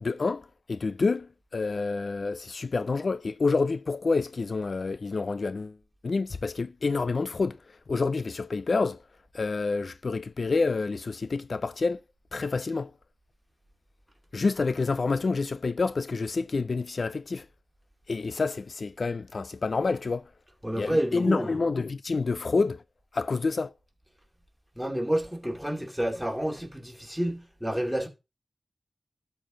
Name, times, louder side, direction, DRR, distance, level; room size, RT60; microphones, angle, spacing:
voice 1, 0.0-5.7 6.0-7.6 7.9-9.0 9.3-12.0 12.3-12.9 14.3-17.4 18.1-20.2 20.7-22.8 23.1-23.7, left 4 dB, 60° left, 0.4 m, -28 dB
voice 2, 20.6-21.6 24.8-28.1, right 1 dB, 5° right, 2.3 m, -29 dB
12.5 x 4.6 x 3.8 m
wide cardioid pair, 90°, 0 cm